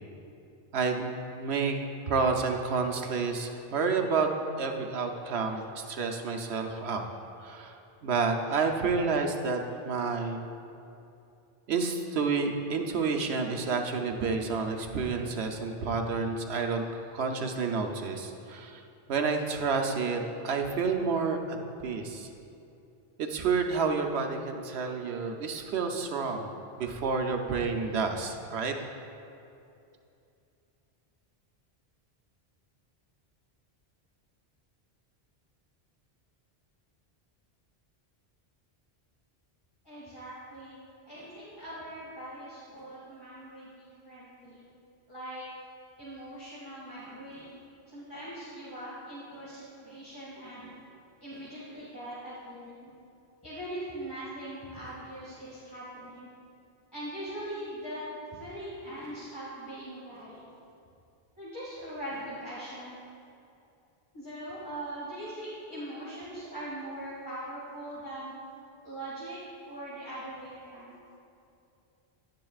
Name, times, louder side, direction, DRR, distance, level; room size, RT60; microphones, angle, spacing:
voice 1, 0.7-1.1 1.4-1.8 2.1-4.3 4.6-7.1 7.4-10.5 11.7-18.8 19.1-22.3 23.2-26.5 26.8-28.8, right 4 dB, 80° right, 4 dB, 1.0 m, -30 dB
voice 2, 39.8-40.8 41.1-44.6 45.1-45.4 46.0-47.5 47.9-50.7 51.2-52.9 53.4-56.3 56.9-58.0 58.3-60.4 61.4-63.0 64.1-68.3 68.8-69.4 69.7-71.0, right 1 dB, 20° left, -10 dB, 1.9 m, -41 dB
10.5 x 10.5 x 2.4 m, 2.7 s
omnidirectional pair, 1.1 m